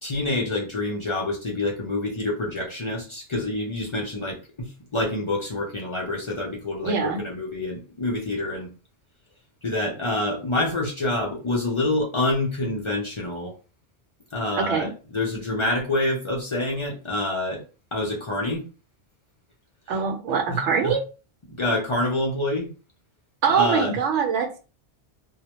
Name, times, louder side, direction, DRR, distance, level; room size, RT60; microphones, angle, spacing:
voice 1, 0.0-8.7 9.6-13.5 14.3-17.6 17.9-18.7 20.5-21.0 21.5-22.7 23.5-23.9, left 2 dB, 45° left, -2 dB, 0.4 m, -27 dB
voice 2, 6.8-7.2 14.6-14.9 19.9-21.0 23.4-24.6, right 6 dB, 80° right, 4 dB, 0.9 m, -23 dB
2.2 x 2.1 x 2.8 m, 0.34 s
omnidirectional pair, 1.2 m